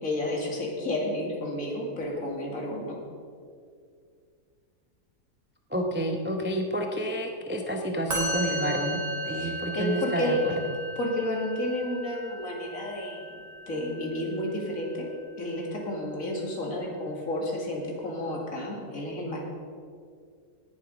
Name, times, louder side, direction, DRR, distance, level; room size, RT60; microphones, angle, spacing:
voice 1, 0.0-3.0 9.3-10.4 11.0-19.4, left 1 dB, 50° left, -1 dB, 2.6 m, -31 dB
voice 2, 5.7-10.5, equal, 10° right, 3 dB, 0.5 m, -30 dB
Musical instrument, 8.1-15.4, equal, 50° right, 3.1 m, -36 dB
18.5 x 7.5 x 5.2 m, 2.2 s
omnidirectional pair, 1.8 m